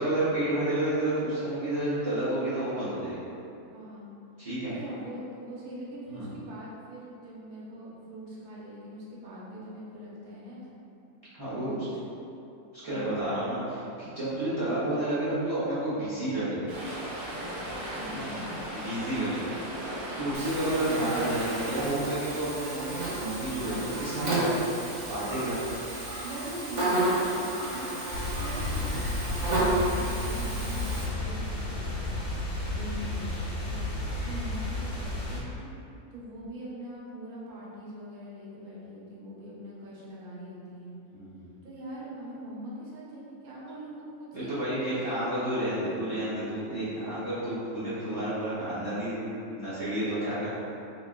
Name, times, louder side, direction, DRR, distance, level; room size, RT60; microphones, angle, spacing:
voice 1, 0.0-3.2 4.4-4.7 6.1-6.3 11.3-11.9 12.7-16.7 18.0-18.3 18.7-19.5 20.2-24.5 25.1-25.6 41.1-41.5 44.3-50.5, right 1 dB, 25° right, -13 dB, 1.0 m, -30 dB
voice 2, 3.7-4.1 4.7-10.8 11.5-11.9 12.8-13.3 18.0-18.6 26.2-28.0 28.4-29.1 29.5-33.8 34.2-35.7 36.1-41.0 41.6-45.5, equal, 85° right, -7 dB, 1.3 m, -42 dB
Stream, 16.7-21.9, right 1 dB, 65° right, 1.1 m, -37 dB
Buzz, 20.3-31.1, right 1 dB, 45° right, 0.6 m, -32 dB
sound 1, 28.1-35.4, left 2 dB, 75° left, 1.5 m, -32 dB
3.8 x 2.9 x 2.4 m, 2.7 s
omnidirectional pair, 1.6 m